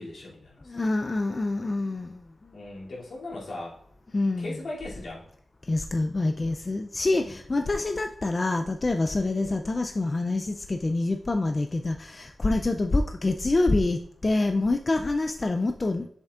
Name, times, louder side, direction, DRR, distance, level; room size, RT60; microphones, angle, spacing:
voice 1, 0.0-0.8 2.5-3.8 4.4-5.2 7.1-7.3 9.3-9.7, left 2 dB, 75° left, 2.6 m, -39 dB
voice 2, 0.7-2.5 4.1-4.5 5.7-16.1, left 2 dB, 30° left, 0.4 m, -26 dB
7.9 x 7.0 x 2.4 m
wide cardioid pair, 135°, 0 cm